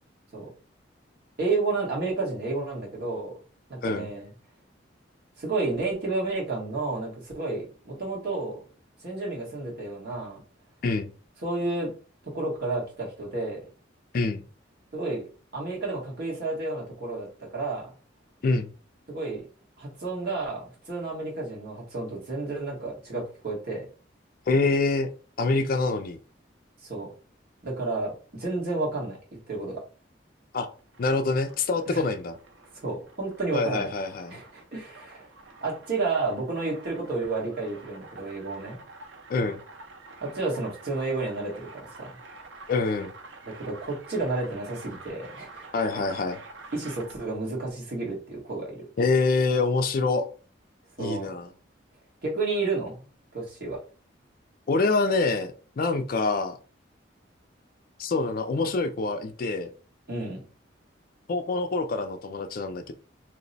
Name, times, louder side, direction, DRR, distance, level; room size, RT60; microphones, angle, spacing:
voice 1, 1.4-3.3 3.7-4.3 5.4-8.6 9.0-10.4 11.4-11.9 12.3-13.6 14.9-15.2 15.5-17.3 17.5-17.8 19.1-19.4 19.8-23.9 26.8-27.1 27.6-29.2 29.5-29.8 31.9-32.0 32.8-33.9 34.3-35.3 35.6-38.8 40.2-42.1 43.4-45.6 46.7-48.8 51.0-51.3 52.2-52.9 53.3-53.8 60.1-60.4, right 3 dB, 55° right, -3 dB, 1.4 m, -31 dB
voice 2, 24.5-25.1 25.4-26.2 30.5-30.7 31.0-32.4 33.5-34.4 39.3-39.6 42.7-43.1 45.7-46.4 49.0-50.3 51.0-51.5 54.7-56.6 58.0-59.7 61.3-62.9, left 3 dB, 50° left, 8 dB, 0.4 m, -26 dB
sound 1, 30.8-47.4, right 3 dB, 80° right, 0.6 m, -48 dB
2.9 x 2.0 x 3.9 m, 0.38 s
head